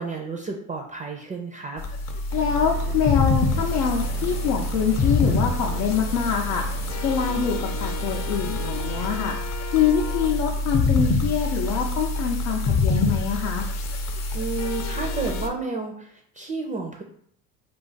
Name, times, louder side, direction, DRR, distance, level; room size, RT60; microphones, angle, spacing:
voice 1, 0.0-1.8 14.3-17.0, right 3 dB, 20° right, 2 dB, 0.4 m, -31 dB
sound 1, 1.8-15.5, left 3 dB, 35° left, 0.5 m, -26 dB
voice 2, 2.3-6.7 7.0-9.4 9.7-13.7, left 7 dB, 90° left, 0 dB, 0.6 m, -25 dB
sound 2, 2.3-9.2, right 6 dB, 75° right, 0.8 m, -39 dB
2.4 x 2.4 x 3.9 m, 0.63 s
hypercardioid pair, 75°, 47 cm